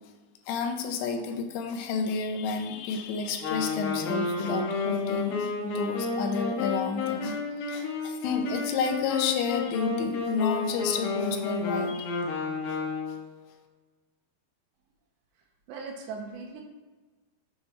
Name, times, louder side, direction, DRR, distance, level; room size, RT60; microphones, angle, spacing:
voice 1, 0.5-7.4 7.7-12.3, left 5 dB, 90° left, 5 dB, 3.3 m, -31 dB
Wind instrument woodwind instrument, 3.4-13.3, left 4 dB, 75° left, 2.0 m, -31 dB
voice 2, 15.7-16.6, right 4 dB, 80° right, 2 dB, 2.6 m, -38 dB
8.3 x 3.3 x 5.8 m, 1.3 s
omnidirectional pair, 5.5 m